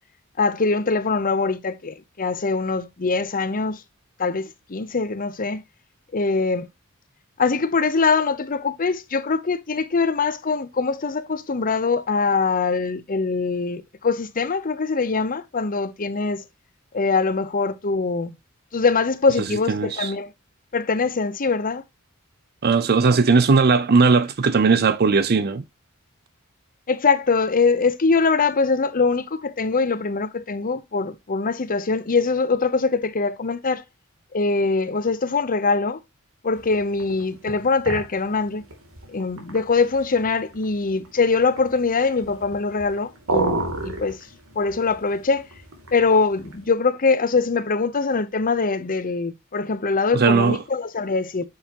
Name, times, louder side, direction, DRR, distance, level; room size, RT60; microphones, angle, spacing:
voice 1, 0.4-3.8 4.2-5.6 6.1-6.7 7.4-16.4 16.9-18.4 18.7-20.3 20.7-21.8 26.9-33.8 34.3-36.0 36.4-38.6 39.1-44.2 44.6-45.5 45.9-51.5, left 4 dB, 40° left, 0.8 m, -23 dB
voice 2, 19.7-20.1 22.6-25.6 50.1-50.6, right 4 dB, 50° right, 0.5 m, -18 dB
sound 1, 36.6-46.7, right 2 dB, 85° right, 2.8 m, -33 dB
9.3 x 6.4 x 2.9 m
head